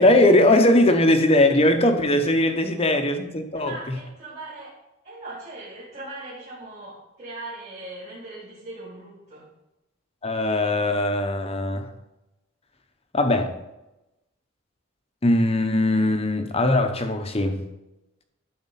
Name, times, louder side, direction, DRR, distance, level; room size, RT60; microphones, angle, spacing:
voice 1, 0.0-4.0 10.2-11.9 13.1-13.5 15.2-17.6, left 1 dB, 30° left, 6 dB, 0.9 m, -20 dB
voice 2, 3.5-4.8 5.0-9.4, right 2 dB, 35° right, -8 dB, 2.9 m, -39 dB
12.5 x 4.4 x 5.6 m, 0.95 s
head